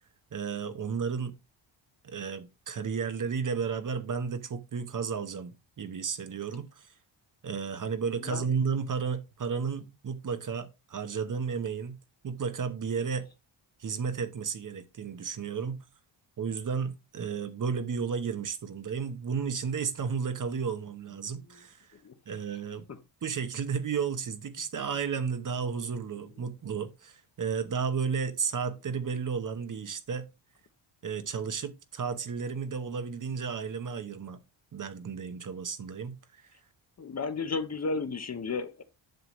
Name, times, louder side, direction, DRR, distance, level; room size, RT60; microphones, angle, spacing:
voice 1, 0.3-1.4 2.0-6.9 7.4-12.0 12.2-13.3 13.8-15.8 16.4-21.9 22.3-22.8 23.2-30.3 31.0-34.4 34.7-36.5, right 6 dB, 40° right, 1.0 m, -33 dB
voice 2, 37.0-38.8, left 4 dB, 35° left, 0.9 m, -33 dB
7.8 x 6.8 x 3.0 m
cardioid pair, 110°, 47 cm